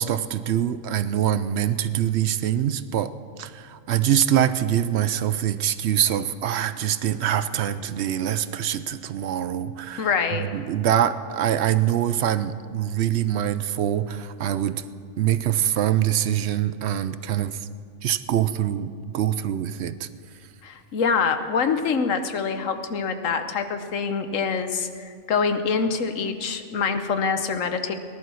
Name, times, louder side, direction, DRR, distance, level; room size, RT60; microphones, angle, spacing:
voice 1, 0.0-3.1 3.4-14.8 15.2-17.7 18.0-20.1, right 10 dB, 65° right, 13 dB, 0.8 m, -24 dB
voice 2, 10.0-10.5 20.6-27.9, left 5 dB, 85° left, 8 dB, 1.3 m, -25 dB
18.5 x 11.0 x 6.2 m, 2.2 s
omnidirectional pair, 1.3 m